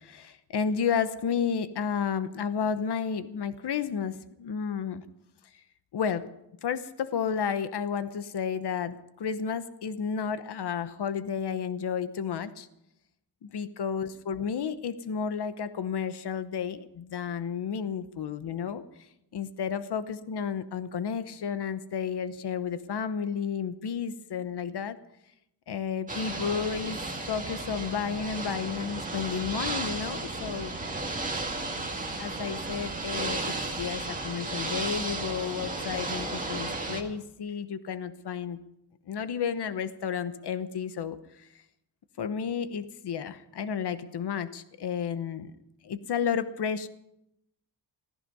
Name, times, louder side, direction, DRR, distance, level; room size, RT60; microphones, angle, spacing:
voice 1, 0.0-5.0 5.9-6.3 6.6-12.7 13.4-18.8 19.3-25.0 25.7-27.0 27.3-30.7 32.2-38.6 39.1-41.5 42.2-45.5 45.8-46.9, left 7 dB, 70° left, 12 dB, 0.9 m, -32 dB
Ocean / Boat Water vehicle, 26.1-37.0, right 2 dB, 20° right, 2.1 m, -34 dB
16.0 x 15.0 x 5.4 m, 0.82 s
wide cardioid pair, 170°, 42 cm